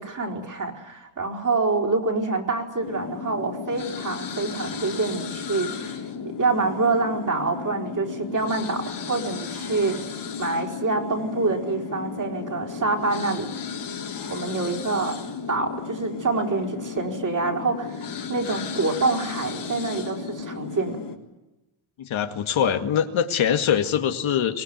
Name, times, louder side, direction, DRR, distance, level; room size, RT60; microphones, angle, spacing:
voice 1, 0.0-13.5 14.3-15.2 15.5-18.0 18.3-21.0, right 3 dB, 40° right, 1 dB, 4.6 m, -26 dB
sound 1, 2.8-21.2, left 6 dB, 55° left, 3.7 m, -34 dB
voice 2, 22.0-24.6, left 8 dB, 75° left, 6 dB, 2.1 m, -23 dB
24.0 x 19.5 x 9.5 m, 1.0 s
cardioid pair, 120°, 48 cm